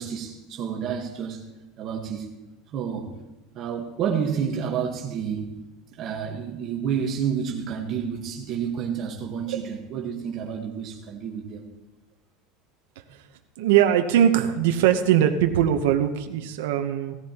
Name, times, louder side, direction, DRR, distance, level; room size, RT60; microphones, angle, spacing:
voice 1, 0.0-1.5 1.8-2.3 2.7-3.1 3.5-5.5 5.9-11.6, right 7 dB, 45° right, 1 dB, 1.4 m, -30 dB
voice 2, 13.6-17.1, right 10 dB, 85° right, 5 dB, 0.9 m, -21 dB
17.5 x 14.5 x 3.0 m, 1.1 s
supercardioid pair, 130°, 0 cm